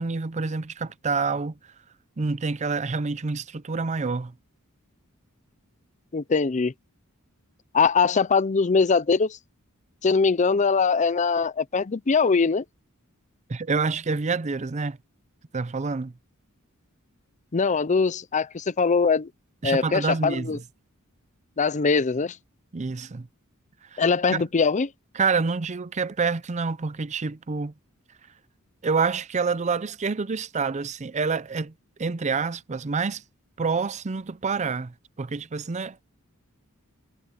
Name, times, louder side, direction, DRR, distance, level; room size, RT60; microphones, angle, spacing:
voice 1, 0.0-1.5 2.2-4.3 13.5-15.0 15.5-16.1 19.6-20.6 22.7-23.3 23.9-24.0 24.3-24.4 25.2-27.7 28.8-31.7 32.0-33.2 33.6-36.0, right 4 dB, 35° right, 0.5 m, -27 dB
voice 2, 6.1-6.7 7.7-9.4 10.0-12.6 17.5-19.3 19.6-20.6 21.6-22.4 24.0-24.9, left 5 dB, 35° left, 0.6 m, -22 dB
head